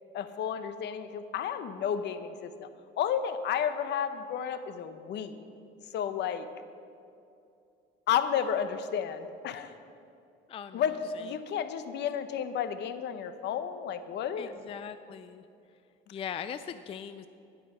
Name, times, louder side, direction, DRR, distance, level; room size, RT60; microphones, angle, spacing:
voice 1, 0.1-2.7 3.0-5.4 5.9-6.5 8.1-9.7 10.7-14.5, left 8 dB, 60° left, 11 dB, 0.8 m, -32 dB
voice 2, 10.5-11.3 14.4-15.4 16.1-17.3, left 8 dB, 30° left, 11 dB, 0.3 m, -40 dB
12.0 x 10.5 x 5.5 m, 2.6 s
cardioid pair, 135°, 20 cm